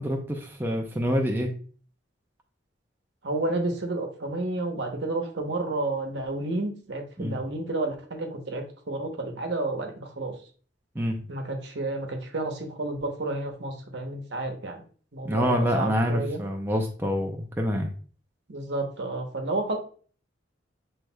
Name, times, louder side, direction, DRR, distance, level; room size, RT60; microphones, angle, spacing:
voice 1, 0.0-1.5 7.2-7.4 11.0-11.2 15.2-17.9, equal, 10° right, 1 dB, 0.5 m, -26 dB
voice 2, 3.2-10.3 11.3-14.8 15.1-16.4 18.5-19.8, right 2 dB, 65° right, 3 dB, 0.9 m, -31 dB
6.0 x 3.2 x 2.2 m, 0.42 s
head